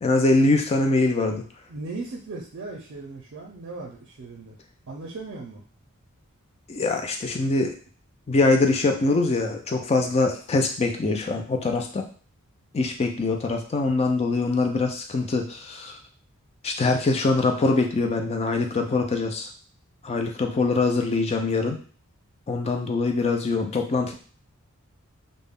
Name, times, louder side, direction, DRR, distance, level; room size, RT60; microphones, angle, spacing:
voice 1, 0.0-1.4 6.7-7.7 8.3-12.1 12.7-16.0 16.6-19.5 20.0-21.8 22.5-24.1, left 3 dB, 30° left, 4 dB, 0.4 m, -23 dB
voice 2, 1.7-4.6 4.9-5.6, right 3 dB, 55° right, -1 dB, 0.5 m, -37 dB
2.3 x 2.0 x 3.5 m, 0.42 s
head